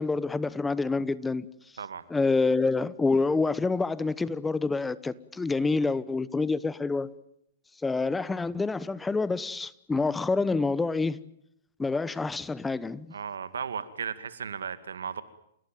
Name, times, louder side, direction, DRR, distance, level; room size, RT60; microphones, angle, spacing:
voice 1, 0.0-1.5 2.1-7.1 7.8-11.2 11.8-13.1, left 3 dB, 10° left, 0.9 m, -27 dB
voice 2, 13.1-15.2, right 6 dB, 85° right, 2.1 m, -35 dB
29.0 x 17.5 x 9.3 m
hypercardioid pair, 130°, 0 cm